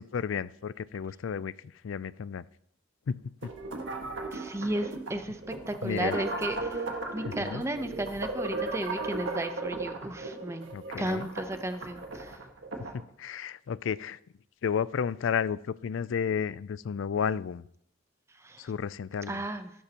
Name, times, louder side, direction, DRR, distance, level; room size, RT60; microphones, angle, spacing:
voice 1, 0.0-1.5 1.8-2.5 3.1-3.3 5.8-6.2 7.3-7.6 10.7-11.3 12.9-14.2 14.6-17.6 18.6-19.4, left 7 dB, 75° left, 18 dB, 0.4 m, -32 dB
sound 1, 3.4-13.0, right 3 dB, 75° right, 1.7 m, -36 dB
voice 2, 4.3-6.8 7.1-12.4 18.3-18.7 19.3-19.7, right 1 dB, 15° right, 9 dB, 0.7 m, -34 dB
14.5 x 12.0 x 2.9 m, 0.69 s
head